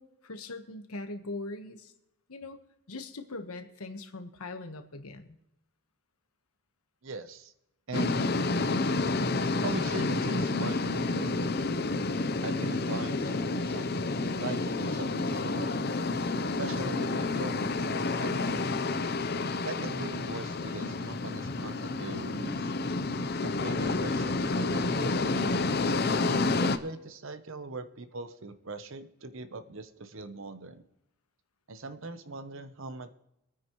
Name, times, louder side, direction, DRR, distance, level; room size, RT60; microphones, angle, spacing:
voice 1, 0.0-1.9 2.3-2.6 2.9-5.4, left 2 dB, 85° left, 7 dB, 1.3 m, -41 dB
voice 2, 7.0-7.5 7.9-8.2 9.6-11.6 12.4-13.9 14.4-15.7 16.6-19.0 19.6-22.7 23.4-26.0 26.6-30.8 31.7-33.1, right 3 dB, 60° right, 10 dB, 0.9 m, -41 dB
sound 1, 7.9-26.8, left 3 dB, 45° left, 0.6 m, -29 dB
24.5 x 9.4 x 3.1 m, 0.87 s
head